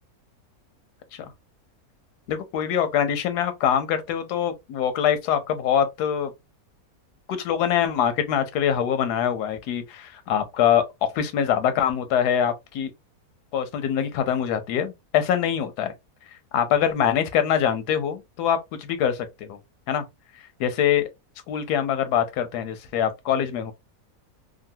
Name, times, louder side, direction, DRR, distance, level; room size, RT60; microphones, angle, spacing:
voice 1, 2.3-6.3 7.3-12.9 13.5-15.9 16.5-19.6 19.9-20.0 20.4-21.1 21.5-23.7, left 9 dB, 90° left, 1.2 m, -24 dB
3.0 x 2.5 x 2.6 m
omnidirectional pair, 1.6 m